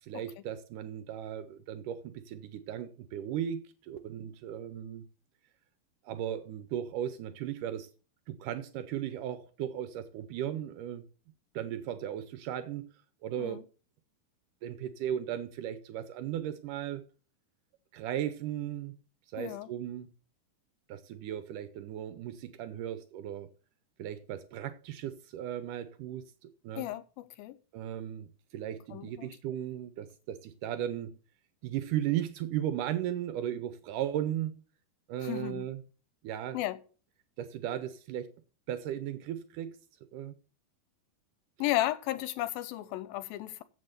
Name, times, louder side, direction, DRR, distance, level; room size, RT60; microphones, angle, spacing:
voice 1, 0.0-5.1 6.0-7.9 8.3-11.1 11.5-12.9 13.2-13.6 14.6-17.0 17.9-19.0 19.3-20.1 20.9-23.5 24.0-26.9 27.7-28.3 28.5-31.2 31.6-34.6 35.1-35.8 36.2-36.6 37.4-38.3 38.7-39.8 40.1-40.4, right 11 dB, 80° right, 1.9 m, -36 dB
voice 2, 19.4-19.7 26.8-27.6 28.9-29.3 35.2-35.7 36.5-36.8 41.6-43.6, left 15 dB, 80° left, 2.3 m, -34 dB
7.9 x 7.7 x 6.6 m
omnidirectional pair, 4.5 m